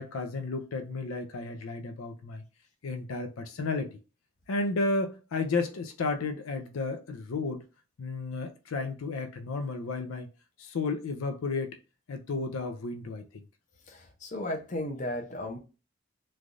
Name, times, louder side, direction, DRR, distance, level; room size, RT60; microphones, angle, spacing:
voice 1, 0.0-2.4 2.8-4.0 4.5-7.6 8.0-10.3 10.6-11.8 12.1-13.2, left 3 dB, 85° left, 0.5 m, -32 dB
voice 2, 13.9-15.6, left 1 dB, 35° left, 0.6 m, -35 dB
3.2 x 2.3 x 2.5 m
head